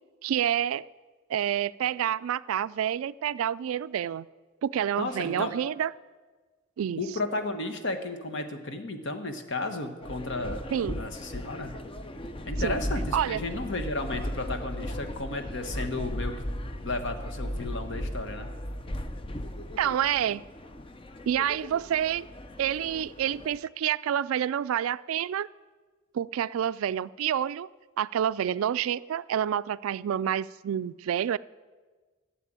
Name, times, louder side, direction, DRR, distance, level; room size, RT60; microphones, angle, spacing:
voice 1, 0.2-0.8 1.3-4.3 4.6-5.9 6.8-7.0 10.7-11.0 12.6-12.8 13.1-13.4 19.8-20.4 21.3-22.3 22.6-25.5 26.1-27.7 28.0-31.4, right 9 dB, 85° right, 19 dB, 0.3 m, -28 dB
voice 2, 5.0-5.5 7.0-11.8 12.5-16.3 16.8-18.5, left 2 dB, 60° left, 7 dB, 1.3 m, -33 dB
sound 1, 10.0-23.6, equal, 25° left, 0.6 m, -36 dB
12.5 x 7.6 x 8.8 m, 1.4 s
head